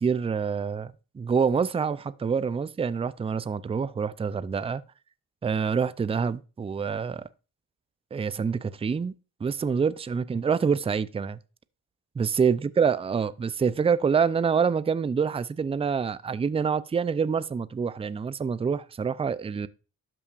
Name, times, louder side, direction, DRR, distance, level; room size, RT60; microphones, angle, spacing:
voice 1, 0.0-4.8 5.4-7.3 8.1-9.1 9.4-11.4 12.2-19.7, right 6 dB, 15° right, 0.4 m, -26 dB
12.5 x 5.6 x 2.5 m
supercardioid pair, 60°, 37 cm